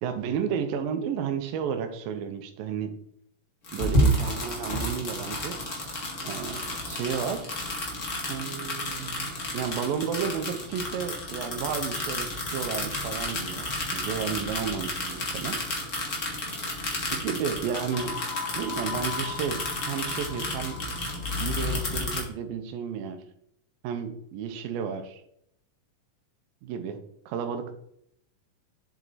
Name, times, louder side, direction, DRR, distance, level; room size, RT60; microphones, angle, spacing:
voice 1, 0.0-3.0 3.7-5.6 6.2-7.5 8.3-15.6 17.1-18.1 18.5-20.8 21.4-23.2 23.8-25.2 26.6-27.0 27.3-27.7, right 7 dB, 80° right, 7 dB, 2.5 m, -32 dB
sound 1, 3.6-22.2, left 1 dB, 30° left, 1.6 m, -31 dB
sound 2, 17.9-21.5, left 6 dB, 75° left, 2.5 m, -39 dB
7.6 x 6.7 x 4.1 m, 0.71 s
omnidirectional pair, 4.2 m